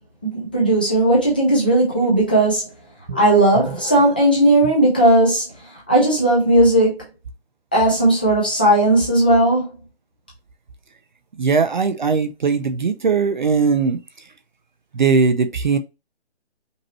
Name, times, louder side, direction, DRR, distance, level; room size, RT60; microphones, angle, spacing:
voice 1, 0.2-2.7 3.1-5.5 5.9-7.0 7.7-9.7, right 1 dB, 10° left, 0.5 m, -16 dB
voice 2, 11.4-14.0 14.9-15.8, right 5 dB, 45° right, 0.5 m, -19 dB
5.2 x 2.9 x 2.9 m
hypercardioid pair, 165°, 33 cm